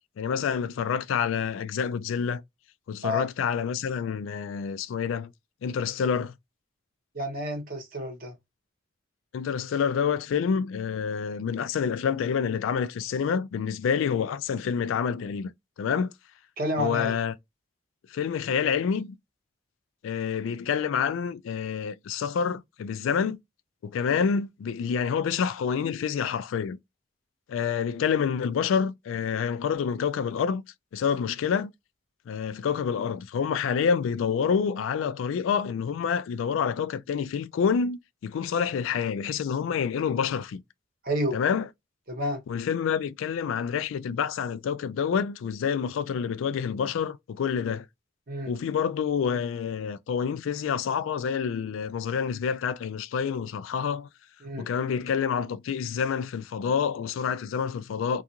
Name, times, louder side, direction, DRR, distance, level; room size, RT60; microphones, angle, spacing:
voice 1, 0.2-2.4 2.9-5.3 5.6-6.3 9.3-15.5 15.8-16.1 16.8-17.3 18.1-19.2 20.0-23.4 23.8-26.8 27.5-30.6 30.9-31.7 32.3-40.6 41.3-41.7 42.5-47.9 48.5-54.1 54.6-58.2, left 7 dB, 75° left, 0.3 m, -28 dB
voice 2, 7.1-8.3 16.6-17.1 41.0-41.4 42.1-42.4 48.3-48.5 54.4-54.7, left 1 dB, 45° right, 1.0 m, -29 dB
2.4 x 2.3 x 2.8 m
head